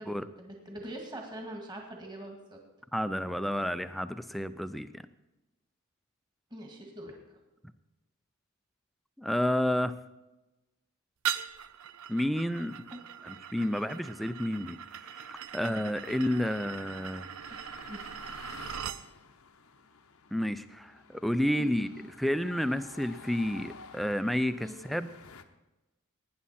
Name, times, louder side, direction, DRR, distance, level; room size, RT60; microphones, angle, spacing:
voice 1, 0.0-2.6 6.5-7.4 12.9-13.0 13.6-13.8 17.5-17.6 17.9-18.1 21.6-21.7 22.0-22.1 24.6-24.8, right 1 dB, 20° right, 1 dB, 1.8 m, -43 dB
voice 2, 2.9-5.1 9.2-9.9 12.1-12.8 13.2-17.3 20.3-21.9 22.2-25.1, equal, ahead, 11 dB, 0.4 m, -31 dB
sound 1, 11.2-19.0, right 9 dB, 75° right, 0.6 m, -40 dB
sound 2, 16.9-25.4, left 5 dB, 75° left, 0.9 m, -52 dB
18.5 x 9.7 x 4.3 m, 1.0 s
head